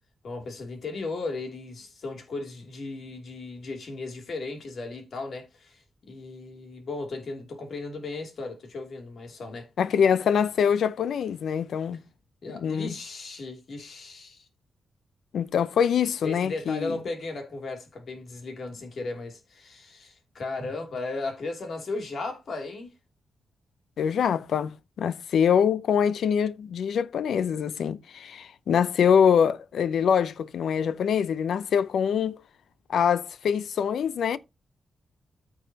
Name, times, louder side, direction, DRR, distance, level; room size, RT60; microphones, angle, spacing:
voice 1, 0.2-9.7 12.4-14.5 16.2-22.9, left 3 dB, 60° left, 2.8 m, -36 dB
voice 2, 9.8-12.0 12.5-12.9 15.3-17.0 24.0-32.4 32.9-34.4, left 7 dB, 85° left, 0.6 m, -24 dB
14.0 x 4.8 x 2.9 m
wide cardioid pair, 115°, 0 cm